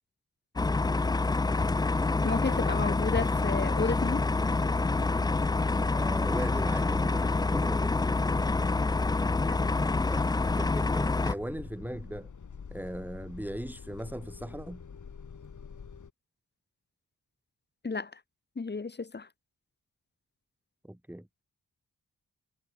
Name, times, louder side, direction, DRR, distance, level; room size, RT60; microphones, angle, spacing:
sound 1, 0.6-11.3, left 3 dB, 10° left, 0.3 m, -27 dB
voice 1, 2.2-4.2 9.5-9.8 17.8-18.2 18.5-19.3, left 4 dB, 30° left, 1.5 m, -32 dB
sound 2, 5.3-16.1, left 6 dB, 55° left, 6.0 m, -46 dB
voice 2, 5.9-8.2 10.1-12.3 12.7-14.8 20.8-21.3, right 1 dB, 5° right, 2.4 m, -39 dB
wide cardioid pair, 115°, 35 cm